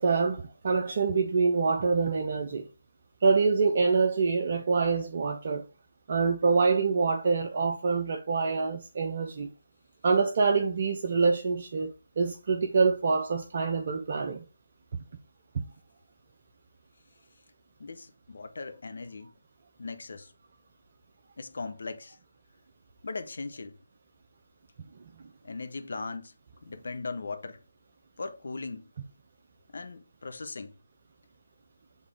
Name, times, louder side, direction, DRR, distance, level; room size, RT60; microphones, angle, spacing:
voice 1, 0.0-2.7 3.2-5.6 6.1-9.5 10.0-14.5 15.5-15.6, right 4 dB, 45° right, 0.8 m, -26 dB
voice 2, 17.8-19.3 19.8-20.3 21.4-22.2 23.0-23.8 25.4-26.3 26.6-27.6 28.2-28.9 29.7-30.8, left 3 dB, 60° left, 1.0 m, -38 dB
6.6 x 3.6 x 4.8 m
figure-of-eight pair, 150°, 0 cm